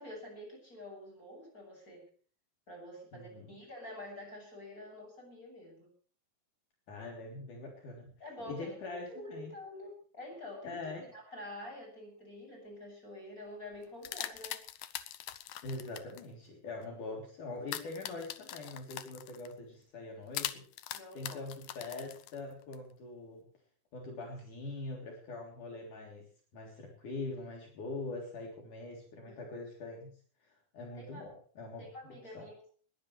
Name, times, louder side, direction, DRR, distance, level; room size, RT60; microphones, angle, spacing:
voice 1, 0.0-2.1 2.7-5.9 8.2-8.7 9.1-14.6 20.9-21.4 29.3-29.4 30.9-31.3 31.8-32.7, left 1 dB, 20° left, 1 dB, 8.1 m, -47 dB
voice 2, 3.1-3.6 6.9-8.1 8.5-9.5 10.6-11.1 15.6-23.4 23.9-30.1 30.4-31.9 32.3-32.5, left 2 dB, 60° left, 0 dB, 4.9 m, -43 dB
sound 1, 13.7-16.2 17.7-19.5 20.3-22.8, left 12 dB, 75° left, 2.6 m, -42 dB
21.0 x 17.5 x 3.3 m, 0.43 s
omnidirectional pair, 4.1 m